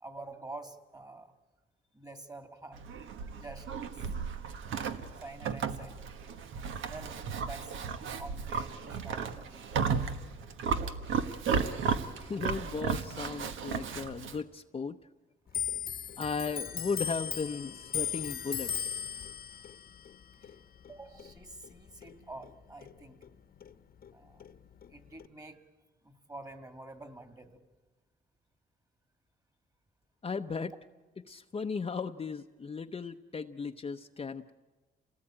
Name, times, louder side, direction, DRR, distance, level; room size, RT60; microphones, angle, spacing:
voice 1, 0.0-1.3 1.9-2.8 3.3-3.7 5.2-6.1 6.9-7.7 8.2-9.6 20.4-20.6 20.9-23.2 24.1-24.5 24.9-25.6 26.0-27.6, right 2 dB, 20° right, 8 dB, 2.5 m, -47 dB
Livestock farm animals working animals, 2.7-14.4, right 6 dB, 80° right, 1.4 m, -34 dB
voice 2, 12.2-15.0 16.2-19.0 30.2-30.7 31.3-34.5, left 5 dB, 30° left, 6 dB, 0.7 m, -36 dB
Clock, 15.5-22.5 22.8-24.1 24.4-25.3, left 8 dB, 50° left, 1.1 m, -38 dB
27.5 x 18.5 x 8.9 m, 1.3 s
cardioid pair, 90°, 20 cm